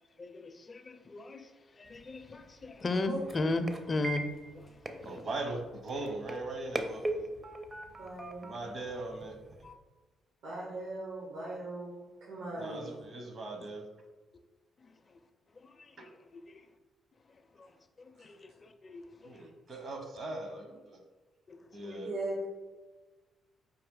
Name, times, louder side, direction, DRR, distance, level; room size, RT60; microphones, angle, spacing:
voice 1, 0.2-1.5 1.8-4.2 4.5-5.1 9.6-9.8 15.6-16.6 17.5-17.7 18.0-19.4 21.5-21.6 21.8-22.0, left 2 dB, 35° left, 0.4 m, -37 dB
sound 1, 1.8-9.7, right 2 dB, 25° right, 0.5 m, -42 dB
voice 2, 5.0-7.3 8.4-9.4 12.6-13.9 16.0-16.1 19.2-21.0 21.7-22.1, right 2 dB, 50° right, 0.9 m, -40 dB
voice 3, 8.0-8.5 10.4-12.0 12.3-12.9 22.0-22.4, right 1 dB, 80° right, 1.1 m, -38 dB
4.9 x 2.7 x 3.8 m
cardioid pair, 90°, 0 cm